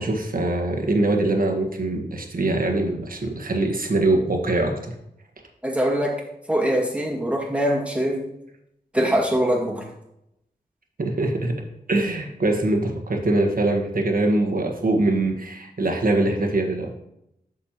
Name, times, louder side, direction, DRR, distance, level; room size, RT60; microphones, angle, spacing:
voice 1, 0.0-4.9 11.0-11.5 11.9-16.9, right 2 dB, 60° right, 2 dB, 1.4 m, -23 dB
voice 2, 5.6-6.2 6.5-8.3 8.9-9.9, equal, 5° right, -1 dB, 2.0 m, -23 dB
8.7 x 6.4 x 2.9 m, 0.81 s
wide cardioid pair, 60°, 17 cm